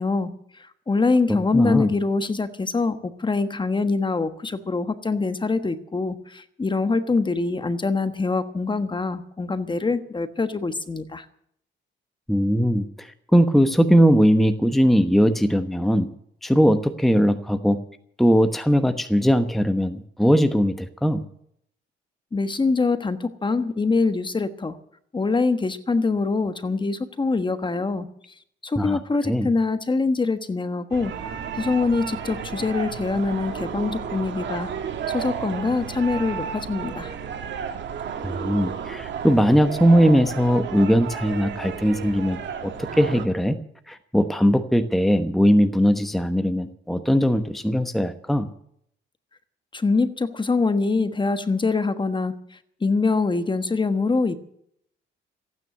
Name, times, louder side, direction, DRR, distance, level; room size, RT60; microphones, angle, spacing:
voice 1, 0.0-11.2 22.3-24.8 25.1-28.1 28.6-31.2 31.5-34.7 35.1-37.1 49.7-54.4, left 3 dB, 25° left, 10 dB, 1.3 m, -24 dB
voice 2, 1.3-1.9 12.3-16.1 16.4-17.8 18.2-21.2 28.8-29.0 29.3-29.5 38.2-43.6 43.9-48.5, equal, ahead, 8 dB, 1.0 m, -20 dB
sound 1, 30.9-43.3, right 7 dB, 65° right, 2.1 m, -32 dB
15.0 x 9.5 x 9.4 m, 0.69 s
cardioid pair, 90°, 20 cm